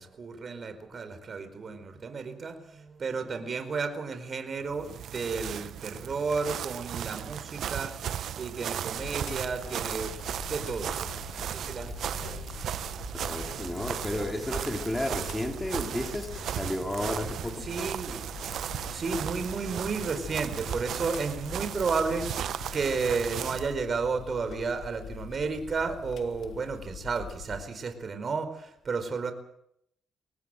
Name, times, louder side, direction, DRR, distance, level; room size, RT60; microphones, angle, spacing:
voice 1, 0.0-10.2 10.5-12.4 17.6-18.2 18.9-29.3, right 4 dB, 45° right, 4.6 m, -33 dB
sound 1, 4.7-23.7, right 10 dB, 70° right, 0.9 m, -36 dB
sound 2, 8.9-27.6, left 7 dB, 70° left, 2.6 m, -44 dB
voice 2, 13.1-17.7, left 1 dB, 10° left, 3.5 m, -33 dB
24.0 x 19.0 x 7.9 m
cardioid pair, 90°, 0 cm